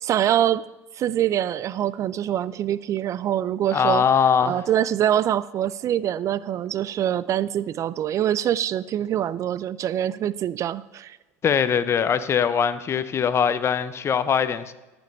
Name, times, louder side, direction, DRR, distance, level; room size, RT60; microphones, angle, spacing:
voice 1, 0.0-0.6 1.0-4.0 4.4-11.2, right 11 dB, 45° right, 0.3 m, -24 dB
voice 2, 3.7-4.6 11.4-14.7, left 7 dB, 35° left, 0.7 m, -21 dB
14.0 x 5.3 x 5.5 m
hypercardioid pair, 90°, 8 cm